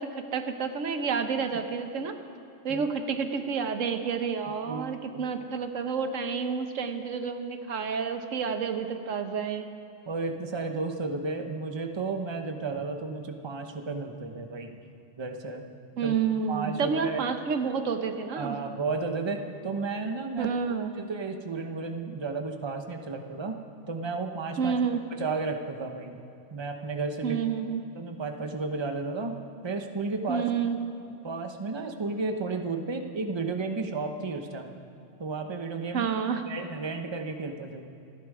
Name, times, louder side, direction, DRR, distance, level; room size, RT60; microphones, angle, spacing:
voice 1, 0.0-2.2 2.6-9.7 16.0-18.6 20.4-20.9 24.6-25.0 27.2-27.8 30.3-30.8 35.9-36.4, right 6 dB, 90° right, 7 dB, 1.3 m, -29 dB
voice 2, 4.7-5.2 10.1-14.8 15.2-15.6 16.0-16.1 16.5-17.2 18.3-20.5 21.0-23.6 23.9-24.7 25.1-26.2 26.5-27.4 27.9-30.4 31.1-34.7 35.2-36.1 36.5-37.9, right 3 dB, 25° right, 5 dB, 0.9 m, -33 dB
27.5 x 10.0 x 4.8 m, 2.7 s
omnidirectional pair, 1.3 m